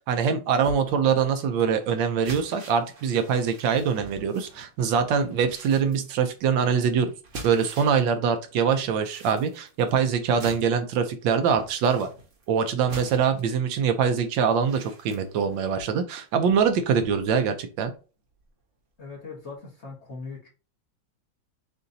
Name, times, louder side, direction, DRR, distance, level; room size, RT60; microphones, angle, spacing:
voice 1, 0.1-7.1 7.4-12.1 12.5-17.9, right 6 dB, 75° right, 8 dB, 1.3 m, -24 dB
sound 1, 0.5-8.1 8.4-17.4 17.8-17.9 18.4-18.5, right 2 dB, 50° right, 1.1 m, -46 dB
voice 2, 19.0-20.5, left 4 dB, 40° left, -3 dB, 1.4 m, -40 dB
6.6 x 2.6 x 2.6 m, 0.35 s
omnidirectional pair, 2.1 m